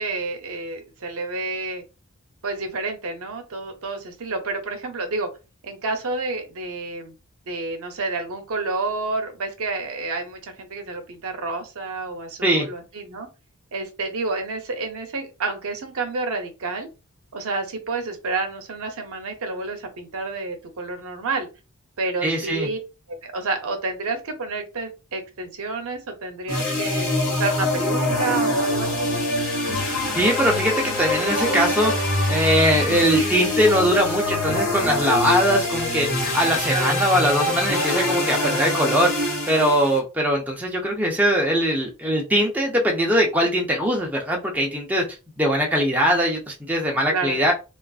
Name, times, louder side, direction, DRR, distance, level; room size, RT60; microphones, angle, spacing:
voice 1, 0.0-1.8 2.4-5.3 5.6-7.1 7.5-13.3 13.7-16.9 17.3-21.5 22.0-22.8 23.1-29.3 36.7-37.0 47.1-47.4, right 3 dB, 65° right, 5 dB, 0.6 m, -29 dB
voice 2, 22.2-22.7 30.2-39.1 39.5-45.1 45.4-47.5, equal, 5° right, -1 dB, 0.5 m, -21 dB
sound 1, 26.5-40.0, left 1 dB, 65° left, 1.1 m, -24 dB
2.4 x 2.3 x 2.3 m, 0.29 s
head